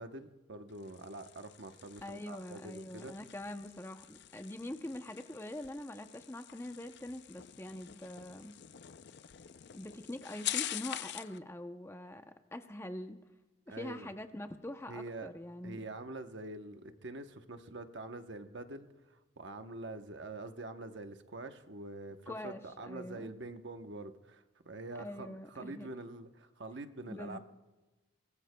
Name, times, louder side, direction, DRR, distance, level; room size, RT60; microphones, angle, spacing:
voice 1, 0.0-3.1 13.7-14.1 14.9-15.3 15.6-27.4, right 2 dB, 60° right, 7 dB, 0.9 m, -45 dB
sound 1, 0.7-11.4, left 12 dB, 55° left, 0.4 m, -45 dB
voice 2, 2.0-8.5 9.7-13.2 13.7-15.8 22.3-23.3 25.0-25.9 27.1-27.4, left 1 dB, 15° left, 7 dB, 0.6 m, -44 dB
23.5 x 18.5 x 2.2 m, 1.1 s
head